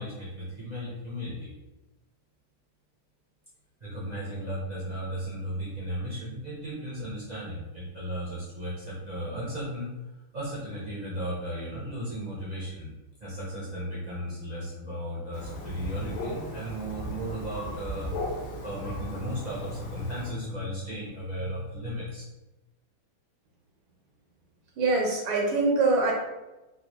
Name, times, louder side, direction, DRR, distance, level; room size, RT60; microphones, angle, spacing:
voice 1, 0.0-1.5 3.8-9.9 10.3-12.9 13.2-22.2, equal, 50° right, -8 dB, 0.5 m, -35 dB
Thunder, 15.3-20.3, left 1 dB, 75° left, 1.3 m, -37 dB
voice 2, 24.8-26.1, right 3 dB, 85° right, 0 dB, 1.5 m, -24 dB
3.9 x 2.4 x 2.9 m, 1.0 s
omnidirectional pair, 2.2 m